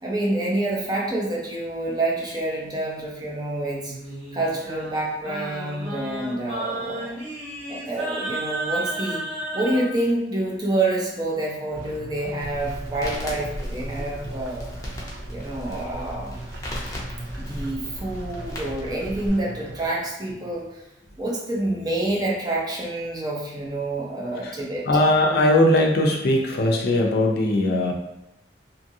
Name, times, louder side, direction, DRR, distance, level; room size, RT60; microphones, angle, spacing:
voice 1, 0.0-3.9 4.3-7.2 7.7-9.2 9.5-14.7 15.3-16.4 17.4-20.8 21.2-24.9, right 2 dB, 20° right, -3 dB, 0.5 m, -27 dB
Singing, 3.8-9.9, right 1 dB, 40° right, 1.2 m, -32 dB
sound 1, 11.7-19.9, right 2 dB, 70° right, 0.6 m, -39 dB
Crackle, 12.4-19.3, equal, 20° left, 0.6 m, -36 dB
voice 2, 24.9-27.9, left 1 dB, 60° left, 1 dB, 0.5 m, -19 dB
2.7 x 2.6 x 2.6 m, 0.87 s
head